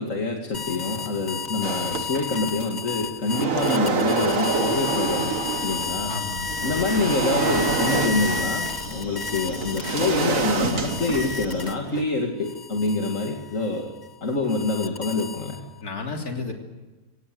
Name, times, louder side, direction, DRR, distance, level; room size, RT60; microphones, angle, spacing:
voice 1, 0.0-5.4 5.6-6.1 6.6-13.9 14.2-15.6, left 3 dB, 55° left, 1 dB, 2.7 m, -26 dB
sound 1, 0.5-12.0 12.4-15.8, left 5 dB, 30° left, 1.4 m, -33 dB
sound 2, 1.6-2.6 3.0-6.0 6.5-12.0, right 4 dB, 60° right, 1.9 m, -27 dB
sound 3, 4.3-11.6, equal, 80° right, 8.2 m, -40 dB
voice 2, 6.1-6.5 15.8-16.5, left 3 dB, 75° left, 2 dB, 3.6 m, -32 dB
25.5 x 18.5 x 7.9 m, 1.2 s
omnidirectional pair, 1.6 m